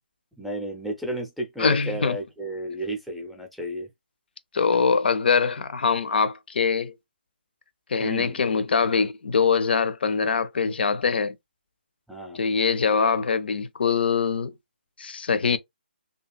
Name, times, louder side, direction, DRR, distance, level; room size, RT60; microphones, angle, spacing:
voice 1, 0.4-3.9 8.0-8.4 10.2-10.3 12.1-12.4, equal, ahead, 0.5 m, -33 dB
voice 2, 1.6-2.2 4.5-6.9 7.9-11.3 12.3-14.5 15.0-15.6, left 5 dB, 65° left, 0.5 m, -23 dB
2.8 x 2.5 x 2.3 m
hypercardioid pair, 155°, 6 cm